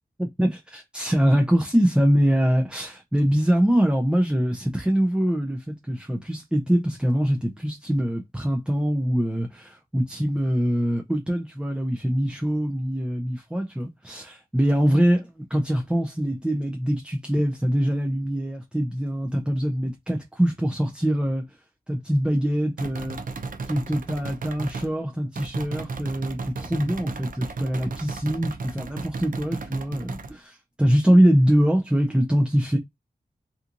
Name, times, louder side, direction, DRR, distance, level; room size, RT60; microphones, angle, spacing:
voice 1, 0.2-21.4 21.9-23.2 23.6-32.8, equal, 5° right, 0.5 m, -23 dB
sound 1, 22.8-24.9 25.3-30.3, right 4 dB, 60° right, 0.5 m, -34 dB
2.9 x 2.4 x 2.4 m
wide cardioid pair, 100°, 16 cm